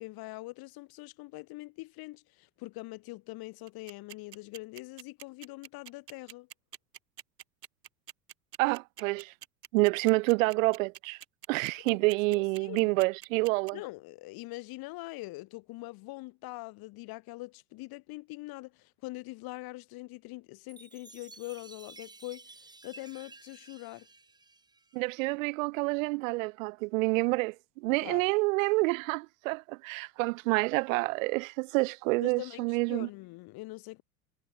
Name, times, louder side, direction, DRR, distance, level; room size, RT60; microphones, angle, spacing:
voice 1, 0.0-6.5 11.8-12.0 12.3-12.9 13.7-22.5 22.8-24.1 27.9-28.3 32.2-34.0, left 21 dB, 45° left, 3.2 m, -43 dB
sound 1, 3.7-13.7, right 11 dB, 75° right, 5.0 m, -46 dB
voice 2, 8.6-9.3 9.7-11.2 11.5-13.8 24.9-33.1, right 26 dB, 55° right, 0.8 m, -28 dB
Chime, 20.7-25.3, right 3 dB, 10° right, 1.6 m, -53 dB
hypercardioid pair, 90°, 49 cm